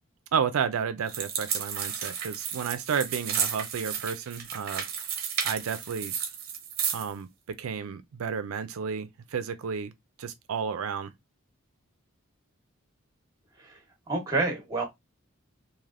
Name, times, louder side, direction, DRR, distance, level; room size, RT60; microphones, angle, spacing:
voice 1, 0.3-4.8 5.4-6.1 6.9-9.9 10.2-11.1, right 6 dB, 85° right, 0.4 m, -32 dB
sound 1, 1.1-7.1, right 7 dB, 45° right, 0.7 m, -33 dB
voice 2, 14.1-14.8, right 3 dB, 20° right, 1.0 m, -28 dB
3.3 x 2.6 x 2.5 m
head